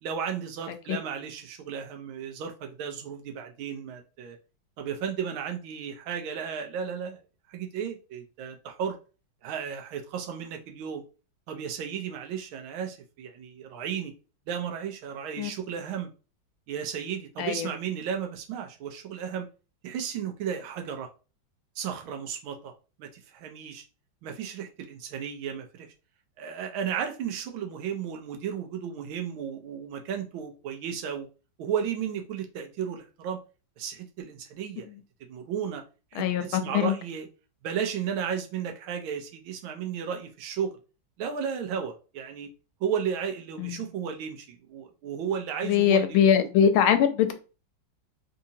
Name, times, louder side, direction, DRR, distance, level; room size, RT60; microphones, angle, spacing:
voice 1, 0.0-4.4 4.8-7.2 7.5-9.0 9.4-11.0 11.5-14.1 14.5-16.1 16.7-19.5 19.8-21.1 21.8-22.7 23.0-23.8 24.2-25.9 26.4-31.3 31.6-33.4 33.8-34.9 35.3-35.8 36.1-37.3 37.6-40.7 41.2-42.5 42.8-46.5, right 7 dB, 85° right, 1.5 m, -34 dB
voice 2, 17.4-17.7 36.1-36.9 43.6-43.8 45.6-47.3, left 8 dB, 85° left, 1.4 m, -22 dB
3.9 x 2.8 x 2.7 m
omnidirectional pair, 2.2 m